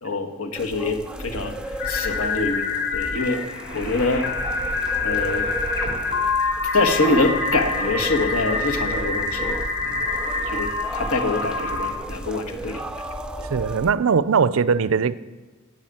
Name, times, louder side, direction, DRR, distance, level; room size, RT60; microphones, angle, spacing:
voice 1, 0.0-3.4 3.7-4.3 5.0-5.5 6.7-10.0 10.5-13.0 13.4-13.5, left 3 dB, 75° left, 5 dB, 1.5 m, -25 dB
sound 1, 0.5-13.9, right 1 dB, 5° right, 0.4 m, -34 dB
sound 2, 1.8-11.9, left 3 dB, 55° left, 3.0 m, -26 dB
voice 2, 13.5-15.1, right 6 dB, 65° right, 17 dB, 0.4 m, -20 dB
10.5 x 8.3 x 8.9 m, 1.3 s
head